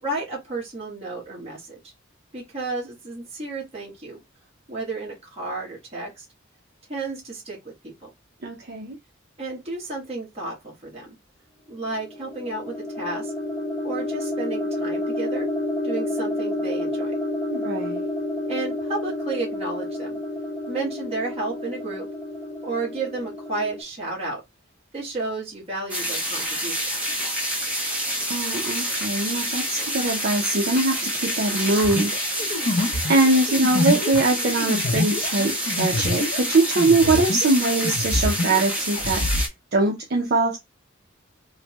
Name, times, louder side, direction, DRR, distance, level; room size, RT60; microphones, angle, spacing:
voice 1, 0.0-1.8 2.3-4.2 4.7-6.2 6.9-7.7 8.0-8.1 9.4-11.1 11.7-13.3 13.8-15.5 15.8-17.1 18.5-20.2 20.7-22.1 22.6-24.4 24.9-26.8, right 3 dB, 30° right, 1.2 m, -32 dB
voice 2, 8.4-9.0 17.5-18.1 28.3-32.1 32.4-32.7 33.1-40.6, right 2 dB, 55° right, 0.6 m, -22 dB
sound 1, 11.9-23.8, left 1 dB, 25° left, 0.9 m, -30 dB
sound 2, 25.9-39.5, equal, 5° right, 0.7 m, -27 dB
sound 3, 31.8-37.6 37.8-39.5, left 2 dB, 55° left, 0.6 m, -26 dB
3.2 x 2.1 x 2.9 m
head